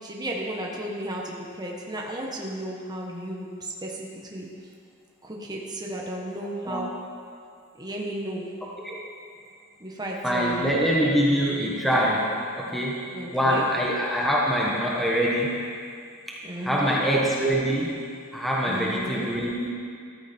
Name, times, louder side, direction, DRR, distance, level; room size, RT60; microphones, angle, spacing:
voice 1, 0.0-4.5 5.2-6.9 7.8-8.5 9.8-10.7 13.1-13.7 16.4-17.0 18.6-19.3, right 1 dB, 20° right, -2 dB, 1.4 m, -34 dB
voice 2, 10.2-12.3 12.5-13.0 13.3-15.5 16.3-16.4 16.6-17.9 18.3-19.5, equal, ahead, -4 dB, 1.3 m, -24 dB
14.0 x 13.5 x 4.5 m, 2.3 s
head